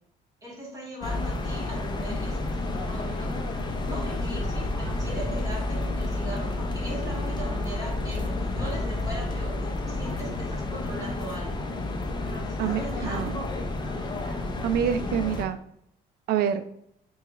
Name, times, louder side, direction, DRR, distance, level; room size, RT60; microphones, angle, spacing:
voice 1, 0.4-11.6 12.2-13.6, right 1 dB, 20° right, -3 dB, 1.7 m, -39 dB
sound 1, 1.0-15.4, left 2 dB, 25° left, 0.6 m, -30 dB
voice 2, 12.6-13.4 14.2-14.3 14.6-15.6 16.3-16.6, right 8 dB, 65° right, 11 dB, 0.4 m, -27 dB
5.5 x 2.3 x 3.0 m, 0.71 s
cardioid pair, 110°, 17 cm